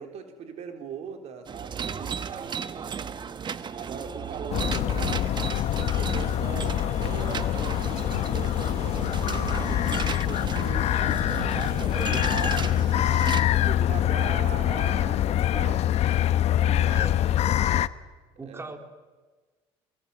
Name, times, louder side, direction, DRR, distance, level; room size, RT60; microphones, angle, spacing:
voice 1, 0.0-2.8 3.6-5.4 5.8-10.9 11.5-15.9 16.5-17.1 18.4-18.7, right 7 dB, 60° right, 5 dB, 3.6 m, -40 dB
sound 1, 1.5-13.4, right 7 dB, 35° right, 1.3 m, -35 dB
sound 2, 4.5-17.9, left 12 dB, 55° left, 0.9 m, -25 dB
voice 2, 11.9-12.4 16.9-17.2 18.4-18.8, right 3 dB, 20° right, 5 dB, 3.8 m, -40 dB
24.0 x 23.0 x 8.3 m, 1.3 s
supercardioid pair, 95°, 13 cm